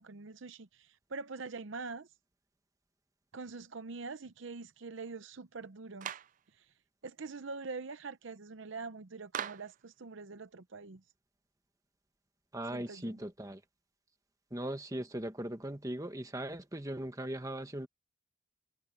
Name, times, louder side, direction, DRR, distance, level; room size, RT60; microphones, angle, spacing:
voice 1, 0.0-2.1 3.3-6.1 6.6-6.7 7.0-11.0 12.7-13.2, right 4 dB, 60° right, 0.7 m, -44 dB
Clapping, 6.0-6.4 9.3-9.8, right 9 dB, 35° right, 0.3 m, -39 dB
voice 2, 12.5-13.6 14.5-17.9, right 1 dB, 15° right, 1.4 m, -39 dB
head